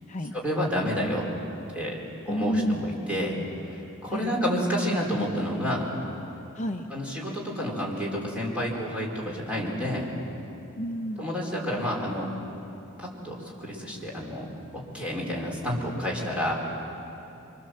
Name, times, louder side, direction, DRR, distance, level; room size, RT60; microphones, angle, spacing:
voice 1, 0.3-1.3 1.7-1.9 2.3-3.4 3.7-5.8 6.9-10.1 11.2-12.3 13.0-14.5 14.7-16.5, equal, 5° right, -3 dB, 4.4 m, -29 dB
voice 2, 2.3-2.8 4.1-4.3 6.6-6.9 10.8-11.3, equal, 35° left, 4 dB, 0.7 m, -29 dB
25.0 x 24.5 x 7.7 m, 2.9 s
head